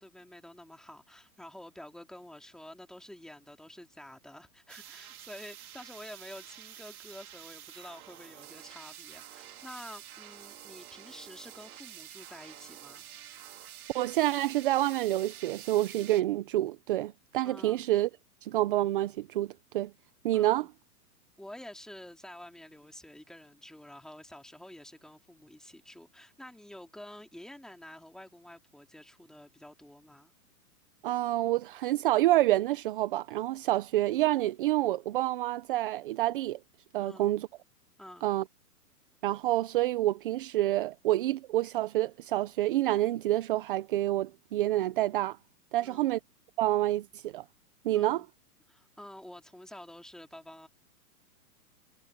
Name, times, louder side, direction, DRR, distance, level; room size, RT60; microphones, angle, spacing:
voice 1, 0.0-13.0 17.4-17.8 20.3-20.7 21.4-30.3 37.0-37.3 38.0-38.3 45.8-46.2 47.9-48.3 48.7-50.7, left 1 dB, ahead, 2.6 m, -49 dB
sound 1, 4.7-16.2, right 11 dB, 65° right, 2.7 m, -49 dB
voice 2, 13.9-18.1 18.4-19.9 20.2-20.7 31.0-36.6 36.9-37.5 38.2-38.4 39.2-45.4 45.7-46.2 46.6-47.4 47.8-48.2, right 15 dB, 35° right, 0.9 m, -28 dB
hypercardioid pair, 160°, 47 cm